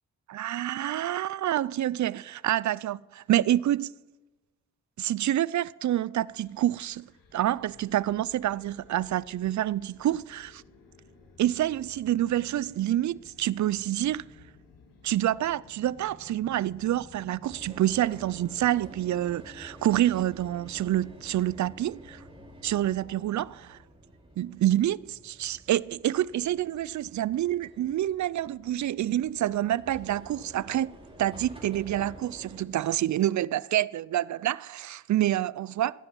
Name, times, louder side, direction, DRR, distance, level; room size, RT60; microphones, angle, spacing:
voice 1, 0.3-3.9 5.0-7.1 7.3-10.6 11.4-14.2 15.0-22.2 22.6-23.8 24.4-30.9 31.2-35.9, right 13 dB, 60° right, 0.5 m, -27 dB
sound 1, 6.3-23.7, left 4 dB, 85° left, 2.4 m, -55 dB
sound 2, 17.4-32.6, right 1 dB, 15° right, 3.7 m, -50 dB
15.0 x 9.7 x 7.3 m
cardioid pair, 50°, 32 cm